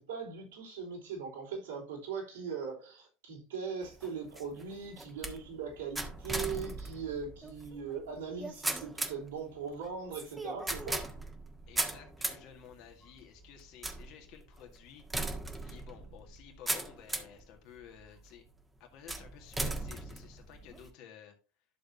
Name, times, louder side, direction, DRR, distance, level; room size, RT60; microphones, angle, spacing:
voice 1, 0.0-11.0, right 6 dB, 70° right, 3.7 m, -40 dB
sound 1, 3.8-17.4 18.0-18.5 19.1-20.9, right 2 dB, 10° right, 1.5 m, -39 dB
voice 2, 11.7-15.0 15.6-18.4 18.8-21.3, left 9 dB, 50° left, 2.0 m, -53 dB
11.5 x 6.6 x 2.7 m
figure-of-eight pair, 75°, 0 cm